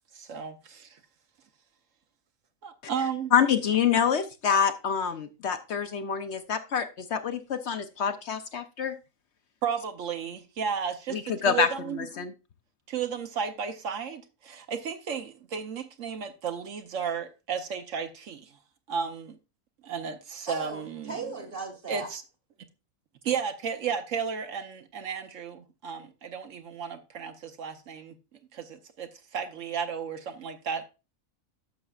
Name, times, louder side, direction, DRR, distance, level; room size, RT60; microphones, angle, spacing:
voice 1, 0.1-1.0 2.6-3.3 9.6-12.1 12.9-18.5 18.9-19.4 19.8-21.2 21.9-22.2 23.2-28.1 28.5-30.8, right 6 dB, 70° right, 1.2 m, -33 dB
voice 2, 3.3-8.9 11.1-11.7 12.0-12.3, left 7 dB, 60° left, 0.9 m, -26 dB
voice 3, 20.5-22.1, right 4 dB, 40° right, 1.6 m, -37 dB
11.0 x 6.7 x 2.4 m
omnidirectional pair, 1.4 m